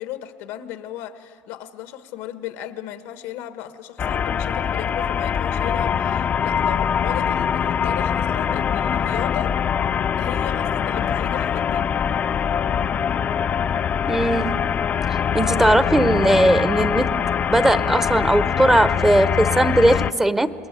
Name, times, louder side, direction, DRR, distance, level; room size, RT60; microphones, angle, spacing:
voice 1, 0.0-9.6 10.2-11.9, left 12 dB, 90° left, 10 dB, 1.3 m, -35 dB
sound 1, 4.0-20.1, left 8 dB, 40° left, 0.5 m, -23 dB
voice 2, 14.1-14.7 15.3-17.2 17.5-20.5, right 1 dB, 10° right, 14 dB, 0.8 m, -18 dB
27.0 x 20.5 x 9.0 m, 2.8 s
cardioid pair, 110°, 4 cm